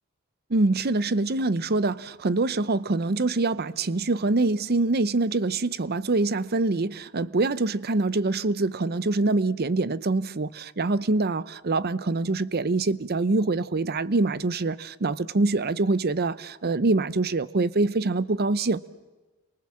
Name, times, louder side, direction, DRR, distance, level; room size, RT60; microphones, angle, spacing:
voice 1, 0.5-18.9, right 3 dB, 50° right, 0.8 m, -25 dB
30.0 x 24.0 x 7.5 m
head